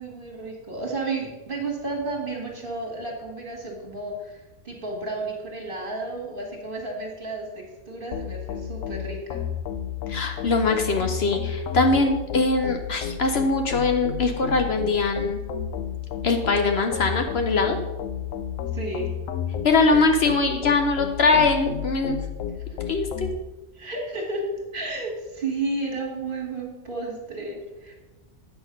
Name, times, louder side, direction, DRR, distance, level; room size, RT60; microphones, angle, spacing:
voice 1, 0.0-9.4 18.7-19.1 23.7-24.4 24.7-27.9, right 3 dB, 45° right, 0 dB, 2.0 m, -32 dB
sound 1, 8.1-23.4, left 9 dB, 90° left, 1.0 m, -32 dB
voice 2, 10.1-15.4 16.2-17.8 19.6-22.2 22.9-23.3, left 3 dB, 60° left, 4 dB, 0.9 m, -22 dB
8.3 x 6.2 x 5.2 m, 1.1 s
omnidirectional pair, 1.3 m